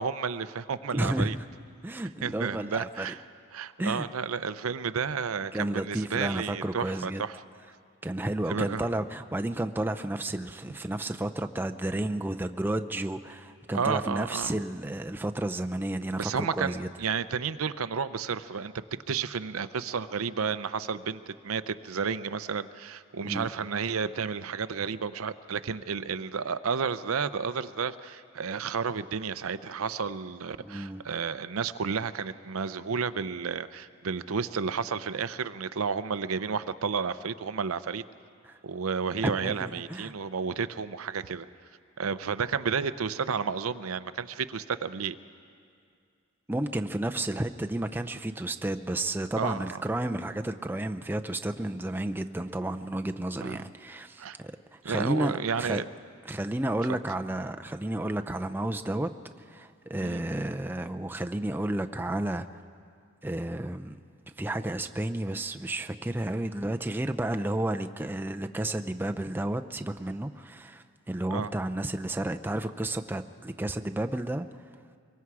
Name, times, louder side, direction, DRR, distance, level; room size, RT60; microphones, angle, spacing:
voice 1, 0.0-1.4 2.2-3.2 3.5-7.4 8.5-8.9 13.7-14.5 16.2-18.7 19.1-38.0 38.6-41.5 42.0-45.2 49.4-49.8 53.4-53.6 54.2-54.4 54.8-55.8 56.9-57.0 60.0-60.2 71.3-71.5, right 6 dB, 85° right, 13 dB, 0.6 m, -31 dB
voice 2, 0.9-1.3 1.8-3.1 3.8-4.1 5.5-7.2 8.0-16.9 23.2-23.5 30.7-31.0 38.4-38.6 39.4-40.1 46.5-54.5 54.8-55.8 56.3-59.1 59.5-62.5 63.2-64.0 64.4-74.5, right 1 dB, 10° right, 7 dB, 0.5 m, -32 dB
25.0 x 22.5 x 4.8 m, 2.3 s
head